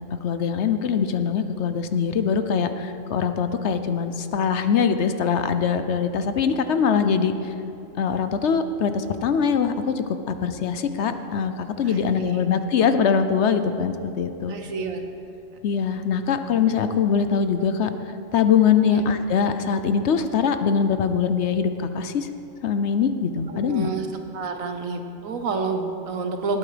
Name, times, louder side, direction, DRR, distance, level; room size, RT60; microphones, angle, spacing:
voice 1, 0.2-7.5 8.0-14.6 15.6-17.9 18.3-22.3 22.6-23.9, left 6 dB, 65° left, 9 dB, 0.9 m, -22 dB
voice 2, 11.8-12.4 14.5-15.0 18.9-19.0 23.5-24.1 24.3-26.6, right 4 dB, 90° right, 6 dB, 1.5 m, -29 dB
19.5 x 8.6 x 5.0 m, 2.7 s
omnidirectional pair, 1.4 m